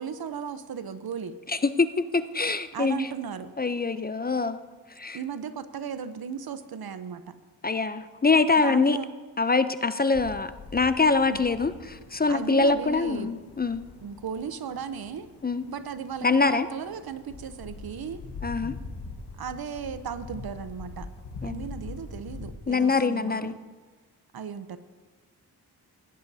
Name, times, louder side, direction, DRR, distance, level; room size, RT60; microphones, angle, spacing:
voice 1, 0.0-1.3 2.7-3.5 5.1-7.3 8.6-9.1 11.3-11.4 12.3-13.4 14.0-15.3 15.7-18.2 19.4-21.1 21.4-23.7 24.3-24.8, right 7 dB, 65° right, 12 dB, 0.8 m, -36 dB
voice 2, 1.5-3.1 3.6-4.6 5.0-5.2 7.6-9.0 9.4-13.8 15.4-15.6 16.2-16.7 18.4-18.8 21.4-21.6 22.7-23.5, left 4 dB, 25° left, 12 dB, 0.5 m, -24 dB
sound 1, 10.1-22.5, left 3 dB, 85° left, 1.4 m, -43 dB
17.0 x 10.5 x 2.7 m, 1.4 s
cardioid pair, 50°, 39 cm